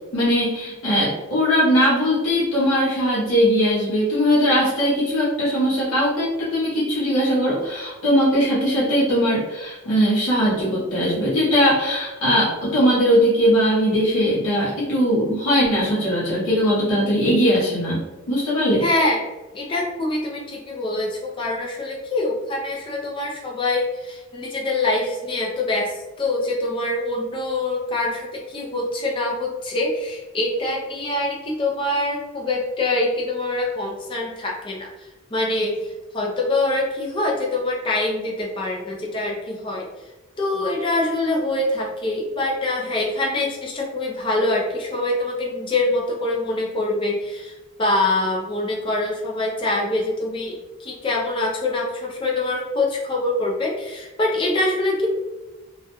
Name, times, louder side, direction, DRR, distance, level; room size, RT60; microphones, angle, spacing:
voice 1, 0.1-18.8, equal, 70° left, -8 dB, 0.7 m, -20 dB
voice 2, 18.8-19.3 19.5-39.9 40.4-55.1, left 2 dB, 25° left, -2 dB, 0.4 m, -24 dB
2.3 x 2.1 x 2.8 m, 1.1 s
head